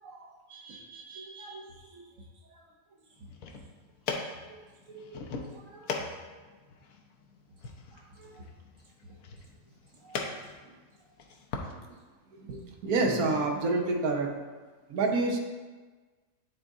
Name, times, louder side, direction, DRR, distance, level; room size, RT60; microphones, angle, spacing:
voice 1, 0.0-1.7 1.9-2.0 4.5-4.6 4.9-6.2 8.2-8.3 10.1-10.2, right 3 dB, 65° right, -1 dB, 1.2 m, -48 dB
sound 1, 3.2-11.7, left 4 dB, 75° left, 1.2 m, -40 dB
voice 2, 12.3-14.3 14.9-15.4, right 3 dB, 85° right, 2 dB, 1.3 m, -27 dB
9.1 x 4.0 x 3.5 m, 1.3 s
omnidirectional pair, 1.5 m